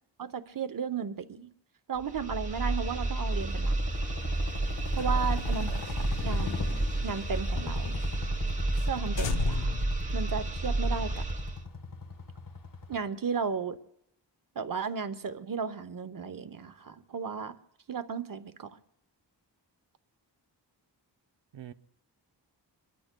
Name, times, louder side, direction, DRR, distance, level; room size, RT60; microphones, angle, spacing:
voice 1, 0.2-1.5 1.9-3.8 5.0-5.7 6.2-6.6 7.0-8.0 8.9-9.8 10.1-11.3 12.9-13.8 14.6-17.6 17.9-18.8, right 6 dB, 50° right, 0.8 m, -34 dB
sound 1, 2.0-11.6, right 2 dB, 15° right, 1.0 m, -31 dB
sound 2, 3.3-13.0, left 5 dB, 50° left, 1.3 m, -39 dB
sound 3, 4.8-7.7 8.0-8.1 8.4-8.5 8.8-8.9 9.2-10.9, left 5 dB, 85° left, 0.8 m, -37 dB
voice 2, 5.0-6.1 21.5-21.7, right 8 dB, 80° right, 0.7 m, -46 dB
27.0 x 22.5 x 2.2 m
wide cardioid pair, 130°, 44 cm